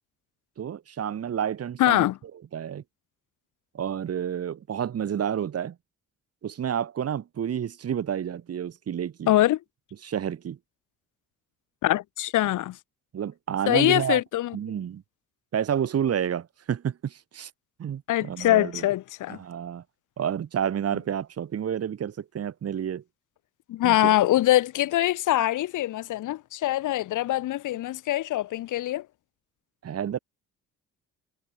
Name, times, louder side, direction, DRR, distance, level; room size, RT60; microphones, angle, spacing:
voice 1, 0.6-2.1 2.5-2.8 3.7-5.8 6.4-9.3 10.0-10.6 13.1-14.2 14.5-15.0 15.5-17.5 17.8-18.8 19.4-19.8 20.2-23.0 23.8-24.2 29.8-30.2, right 9 dB, 55° right, 1.9 m, -30 dB
voice 2, 1.8-2.2 9.3-9.6 11.8-12.8 13.7-14.6 18.1-19.4 23.7-29.1, left 14 dB, 85° left, 2.9 m, -23 dB
cardioid pair, 90°, 30 cm